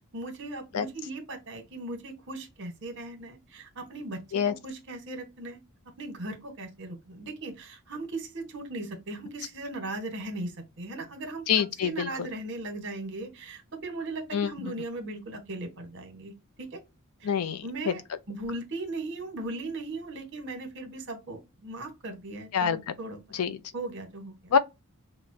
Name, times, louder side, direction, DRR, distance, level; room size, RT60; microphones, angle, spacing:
voice 1, 0.1-5.6 6.0-16.3 16.6-16.8 17.2-17.3 17.6-18.0 18.3-23.5 23.7-24.5, right 2 dB, 55° right, 1.2 m, -38 dB
voice 2, 11.5-12.3 14.3-14.5 17.2-17.9 22.5-22.8 23.3-23.6 24.5-24.6, left 7 dB, 90° left, 0.5 m, -26 dB
5.6 x 2.1 x 2.6 m
head